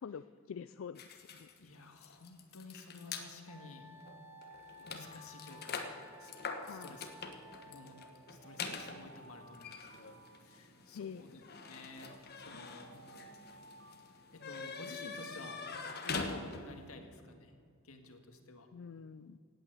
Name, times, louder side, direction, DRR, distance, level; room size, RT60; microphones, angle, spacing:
voice 1, 0.0-1.5 6.7-6.9 10.9-11.2 18.7-19.4, left 7 dB, 65° left, 13 dB, 0.4 m, -46 dB
sound 1, 1.0-3.3 4.0-4.1 4.4-16.9, left 4 dB, 50° left, 1.3 m, -44 dB
voice 2, 1.6-3.9 4.8-5.9 6.2-6.3 6.6-7.1 7.6-11.4 11.7-13.3 14.3-15.8 16.0-17.5 17.8-18.7, left 2 dB, 90° left, 5 dB, 1.8 m, -52 dB
Alarm, 3.1-6.8 7.5-11.2 11.8-15.1, right 2 dB, 65° right, 1.0 m, -59 dB
Wind instrument woodwind instrument, 3.5-8.3, left 1 dB, 10° right, 1.0 m, -57 dB
17.5 x 9.0 x 8.1 m, 2.3 s
head